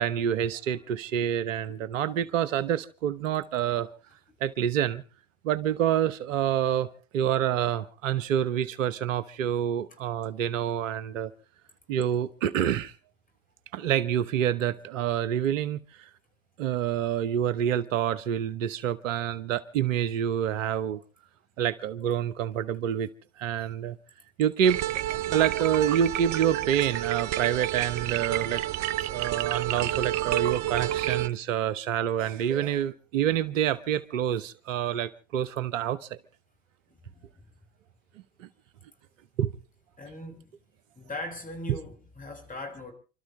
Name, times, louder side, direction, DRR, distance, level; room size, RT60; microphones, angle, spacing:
voice 1, 0.0-3.9 4.4-5.0 5.4-11.3 11.9-12.9 13.7-16.1 16.6-21.0 21.6-23.1 23.4-24.0 24.4-24.8 25.3-28.6 29.1-36.2 38.4-38.5 39.4-39.5, right 10 dB, 75° right, 1.1 m, -27 dB
sound 1, 24.6-31.3, right 13 dB, 45° right, 0.8 m, -29 dB
voice 2, 36.9-37.4 40.0-40.5 41.0-42.9, left 1 dB, 20° left, 6.2 m, -40 dB
29.5 x 13.0 x 3.3 m
hypercardioid pair, 75°, 38 cm